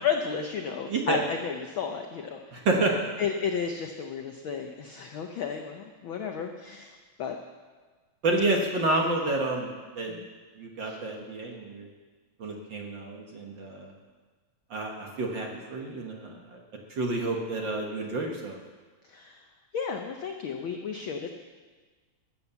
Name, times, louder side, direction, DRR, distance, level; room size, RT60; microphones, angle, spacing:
voice 1, 0.0-2.7 3.2-6.9 7.2-7.4 10.1-10.3 10.8-11.0 19.1-19.4 19.7-21.3, left 6 dB, 80° left, 4 dB, 1.1 m, -33 dB
voice 2, 2.5-3.1 8.2-9.7 10.0-10.1 10.6-11.9 12.4-13.9 14.7-16.3 17.0-18.6, right 2 dB, 50° right, 0 dB, 1.6 m, -29 dB
14.0 x 8.8 x 7.0 m, 1.4 s
omnidirectional pair, 3.3 m